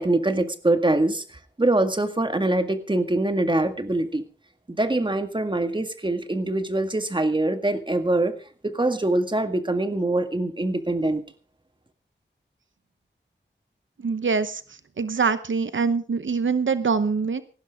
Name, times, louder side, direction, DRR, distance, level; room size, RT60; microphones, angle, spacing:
voice 1, 0.0-4.2 4.7-8.4 8.6-11.2, right 2 dB, 25° right, 8 dB, 1.9 m, -24 dB
voice 2, 14.0-14.6 15.0-17.4, right 5 dB, 85° right, 12 dB, 0.9 m, -24 dB
18.5 x 15.5 x 3.6 m, 0.37 s
wide cardioid pair, 80°, 19 cm